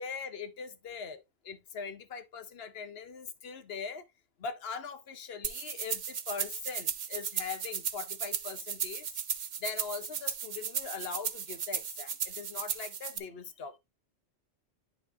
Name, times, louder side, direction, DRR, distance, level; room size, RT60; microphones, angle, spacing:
voice 1, 0.0-4.0 4.4-9.1 9.6-13.8, left 6 dB, 60° left, 1.1 m, -41 dB
sound 1, 5.4-13.2, right 8 dB, 50° right, 0.7 m, -36 dB
10.5 x 5.0 x 2.7 m
omnidirectional pair, 1.2 m